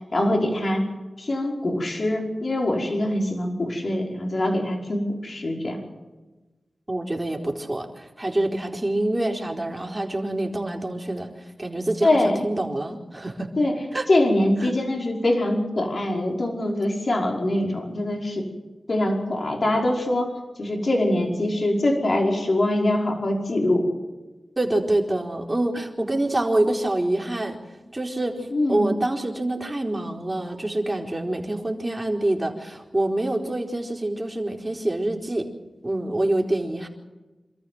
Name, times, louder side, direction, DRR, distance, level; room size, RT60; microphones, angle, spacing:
voice 1, 0.1-0.8 1.2-5.8 12.0-12.4 13.6-13.8 14.1-18.4 18.9-20.3 20.6-23.9 28.5-28.9, left 1 dB, 60° left, 1 dB, 5.3 m, -23 dB
voice 2, 6.9-11.3 11.6-13.5 13.9-14.1 14.6-14.7 24.6-27.6 27.9-35.5 35.8-36.9, right 1 dB, 25° right, 2 dB, 4.2 m, -26 dB
27.5 x 14.0 x 7.8 m, 1.2 s
wide cardioid pair, 55°, 0 cm